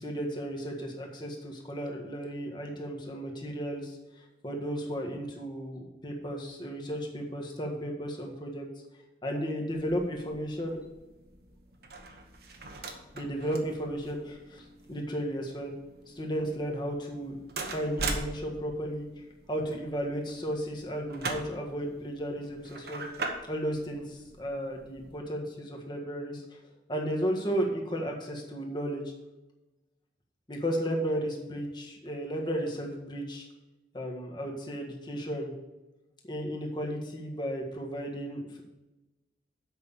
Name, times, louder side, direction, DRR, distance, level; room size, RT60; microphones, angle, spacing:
voice 1, 0.0-4.0 4.4-8.7 9.2-10.8 13.1-15.7 16.1-17.4 17.6-19.1 19.5-23.1 23.5-26.4 26.9-29.1 30.5-33.5 33.9-35.5 36.3-38.6, equal, 25° left, 0 dB, 1.6 m, -34 dB
sound 1, 9.7-25.2, right 3 dB, 60° right, 1.2 m, -42 dB
7.9 x 5.8 x 7.0 m, 1.0 s
head